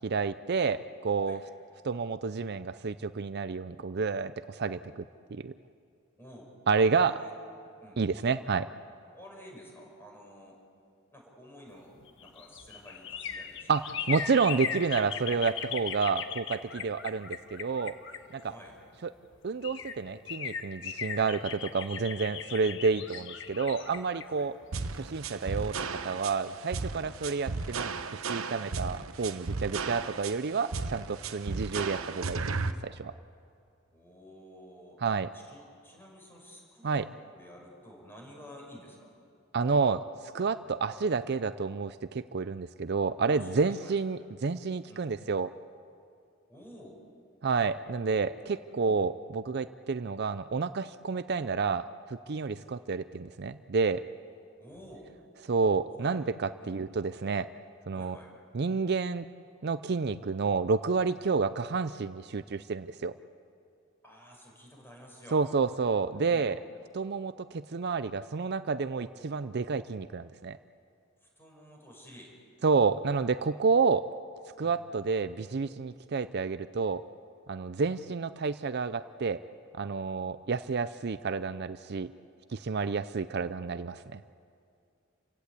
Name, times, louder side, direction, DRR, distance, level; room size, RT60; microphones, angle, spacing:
voice 1, 0.0-1.4 1.8-5.0 5.3-5.5 6.7-7.2 8.0-8.7 13.7-13.8 14.1-17.9 18.3-18.5 19.4-24.5 25.0-33.1 35.0-35.3 36.8-37.1 39.5-40.0 40.3-45.5 47.4-54.0 55.5-57.5 57.9-58.2 58.5-59.2 59.6-63.1 65.3-66.6 66.9-70.6 72.6-74.0 74.6-77.0 77.5-79.4 79.8-82.1 82.5-84.2, right 4 dB, 50° right, 13 dB, 0.5 m, -30 dB
voice 2, 6.2-6.6 7.0-7.3 7.8-8.0 9.1-10.6 11.1-11.9 12.2-14.0 16.7-16.9 18.4-18.8 24.2-24.5 27.0-27.2 31.1-31.5 33.9-35.0 35.3-37.0 37.3-39.1 40.6-40.8 43.2-44.0 44.9-45.1 46.5-47.0 48.6-48.8 54.6-55.1 55.9-56.2 56.6-56.8 57.9-58.3 61.1-61.3 64.0-65.7 66.2-66.5 71.2-72.4 74.6-74.8 77.8-78.0, equal, 10° left, -1 dB, 5.7 m, -51 dB
sound 1, 12.0-18.8 19.3-19.4 19.6-25.4 25.7-25.8, left 7 dB, 60° left, 1.4 m, -38 dB
sound 2, 24.7-32.7, right 4 dB, 90° right, 0.9 m, -34 dB
29.5 x 16.5 x 8.3 m, 2.4 s
head